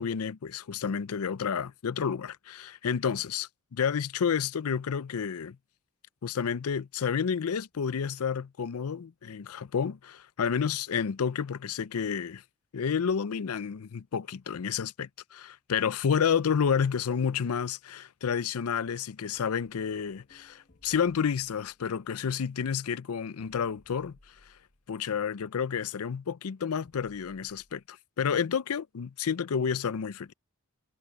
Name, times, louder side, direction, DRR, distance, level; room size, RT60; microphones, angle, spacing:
voice 1, 0.0-5.6 6.2-12.4 12.7-24.2 24.9-30.3, left 7 dB, 80° left, 0.5 m, -30 dB
sound 1, 19.3-25.2 26.8-27.8, left 1 dB, 45° left, 1.5 m, -63 dB
head